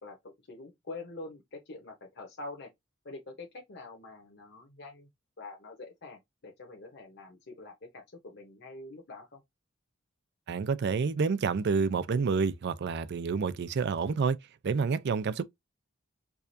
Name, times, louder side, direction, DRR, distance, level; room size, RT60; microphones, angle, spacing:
voice 1, 0.0-2.7 3.0-5.1 5.4-9.4, left 2 dB, 55° left, 1.0 m, -45 dB
voice 2, 10.5-14.4 14.6-15.4, right 5 dB, 55° right, 0.4 m, -28 dB
4.7 x 2.5 x 2.6 m
head